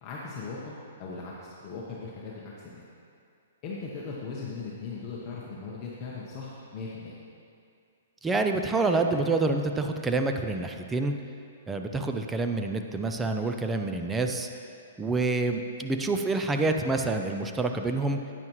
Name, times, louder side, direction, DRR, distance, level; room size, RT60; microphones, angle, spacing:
voice 1, 0.0-2.8 3.6-7.1, left 4 dB, 30° left, -5 dB, 1.0 m, -39 dB
voice 2, 8.2-11.1 11.7-14.5 15.0-18.2, right 3 dB, 10° right, 5 dB, 0.4 m, -27 dB
9.3 x 9.2 x 3.1 m, 2.5 s
hypercardioid pair, 150°, 0 cm